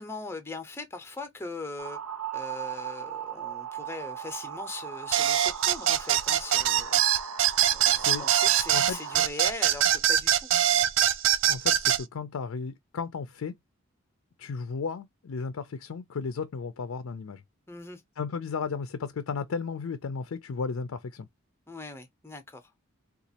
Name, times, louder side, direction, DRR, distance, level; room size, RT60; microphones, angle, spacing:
voice 1, 0.0-2.0 2.3-7.0 7.6-10.5 17.7-18.0 21.7-22.7, left 3 dB, 10° left, 0.6 m, -40 dB
sound 1, 1.8-9.3, right 8 dB, 85° right, 0.8 m, -38 dB
sound 2, 5.1-12.0, right 11 dB, 60° right, 0.4 m, -23 dB
voice 2, 11.5-13.5 14.4-17.4 18.2-21.3, left 5 dB, 75° left, 0.4 m, -34 dB
3.9 x 2.4 x 2.7 m
head